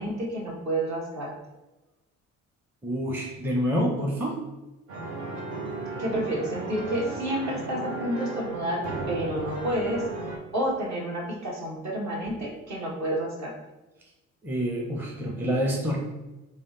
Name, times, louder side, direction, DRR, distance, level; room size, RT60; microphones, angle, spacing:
voice 1, 0.0-1.3 6.0-10.1 10.5-13.5, right 1 dB, 45° right, -2 dB, 1.3 m, -30 dB
voice 2, 2.8-4.4 14.4-16.0, equal, 5° right, -1 dB, 0.6 m, -27 dB
sound 1, 4.9-10.4, right 3 dB, 70° right, 1.0 m, -35 dB
3.4 x 2.1 x 3.8 m, 1.1 s
hypercardioid pair, 50°, 37 cm